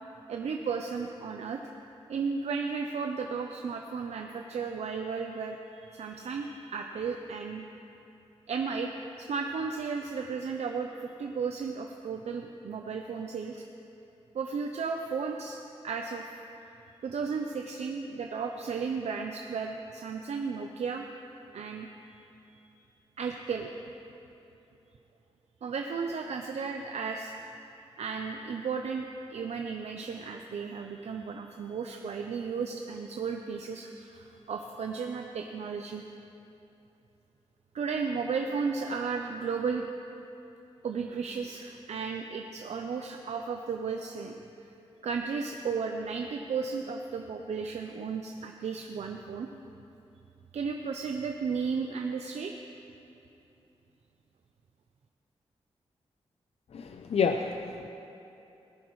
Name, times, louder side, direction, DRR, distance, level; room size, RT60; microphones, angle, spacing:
voice 1, 0.3-1.6 2.1-5.6 5.8-7.6 8.5-8.9 9.2-13.7 14.3-16.3 17.0-21.0 21.5-21.9 22.6-22.7 23.2-23.7 25.6-27.3 28.0-36.0 37.7-39.8 40.8-44.3 45.0-49.5 50.5-52.6, right 5 dB, 80° right, 3 dB, 0.6 m, -34 dB
voice 2, 56.7-57.9, left 5 dB, 70° left, 5 dB, 0.5 m, -29 dB
19.0 x 10.5 x 3.1 m, 2.9 s
cardioid pair, 75°, 11 cm